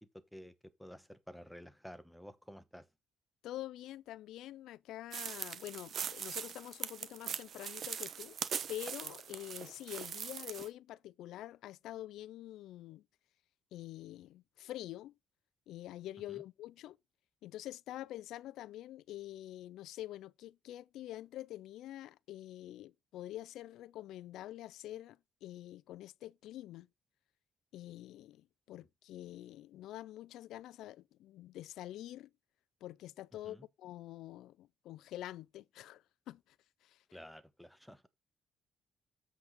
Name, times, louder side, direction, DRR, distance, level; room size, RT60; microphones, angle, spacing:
voice 1, 0.1-0.5 0.8-2.9 16.3-16.4 33.4-33.6 37.1-38.1, equal, ahead, 1.1 m, -52 dB
voice 2, 3.4-8.4 8.7-13.0 13.7-15.1 15.7-17.0 17.4-26.9 27.7-32.3 32.8-36.6 36.8-37.2, left 14 dB, 85° left, 0.4 m, -46 dB
sound 1, 5.1-10.7, right 8 dB, 60° right, 1.0 m, -41 dB
7.9 x 4.6 x 5.2 m
cardioid pair, 90°, 0 cm